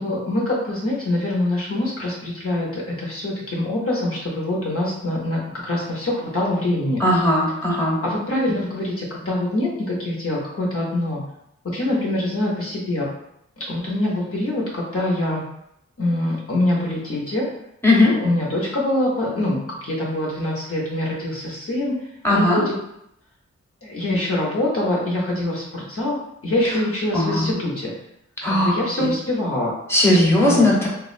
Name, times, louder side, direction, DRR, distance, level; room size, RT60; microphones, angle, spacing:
voice 1, 0.0-7.0 8.0-11.2 11.6-13.1 13.6-15.4 16.0-17.5 18.1-22.8 23.8-26.2 26.4-27.9 28.5-29.7 30.4-30.7, left 1 dB, 50° left, -4 dB, 0.7 m, -24 dB
voice 2, 7.0-8.0 17.8-18.1 22.2-22.6 27.1-27.6 28.4-29.1 29.9-30.9, left 1 dB, 10° left, -4 dB, 0.9 m, -18 dB
3.1 x 2.4 x 2.4 m, 0.78 s
wide cardioid pair, 70°, 29 cm